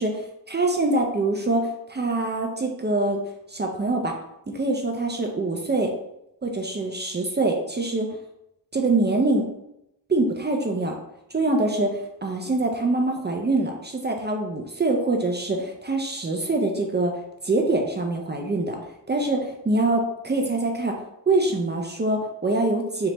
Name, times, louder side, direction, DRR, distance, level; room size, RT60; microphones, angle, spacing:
voice 1, 0.0-3.2 3.5-4.2 4.5-5.9 6.4-8.1 8.7-9.5 10.1-10.9 11.3-17.1 17.4-18.8 19.1-20.9 21.3-23.1, right 2 dB, 25° right, 2 dB, 0.4 m, -24 dB
3.3 x 2.9 x 4.0 m, 0.83 s
wide cardioid pair, 145°, 43 cm